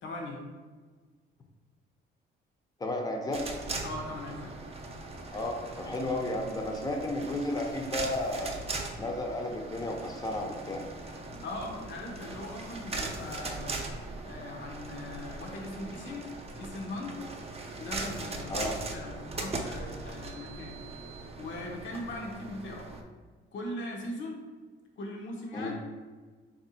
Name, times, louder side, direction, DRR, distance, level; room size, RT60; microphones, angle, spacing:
voice 1, 0.0-0.4 3.8-4.5 11.4-13.8 14.2-17.2 17.8-20.8 21.4-22.9 23.5-24.4 25.0-25.7, left 1 dB, 70° left, 0 dB, 0.9 m, -40 dB
voice 2, 2.8-3.4 5.3-8.6 9.0-10.8 18.5-18.8 25.5-25.7, left 1 dB, 20° left, 1 dB, 0.6 m, -33 dB
sound 1, 3.3-23.0, right 3 dB, 30° right, 0.6 m, -40 dB
3.6 x 2.6 x 4.1 m, 1.4 s
cardioid pair, 90°, 20 cm